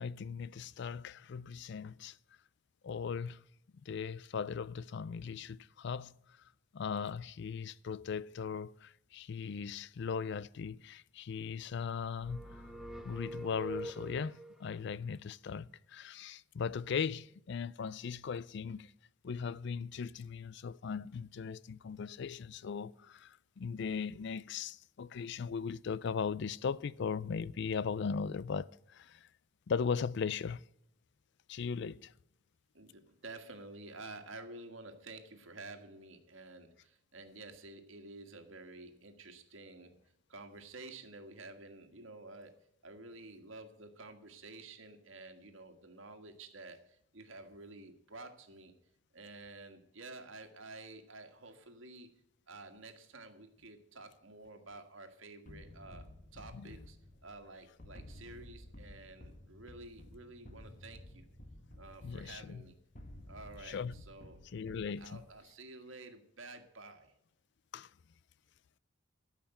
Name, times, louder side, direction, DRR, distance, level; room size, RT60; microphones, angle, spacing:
voice 1, 0.0-2.2 2.8-3.4 3.9-6.1 6.7-12.7 13.0-18.9 19.2-29.2 29.7-30.6 31.5-32.1 56.5-56.7 62.0-62.6 63.6-64.0 64.5-65.2 67.7-67.9, left 6 dB, 60° left, 0.4 m, -38 dB
sound 1, 12.2-14.6, right 1 dB, ahead, 0.8 m, -44 dB
voice 2, 32.7-40.0 40.3-48.7 49.1-52.1 52.5-56.1 56.3-57.0 57.2-61.2 61.8-62.8 63.3-64.4 65.0-67.1, right 2 dB, 75° right, 1.7 m, -51 dB
sound 2, 55.5-65.4, left 1 dB, 45° left, 1.5 m, -53 dB
13.0 x 5.8 x 8.9 m
head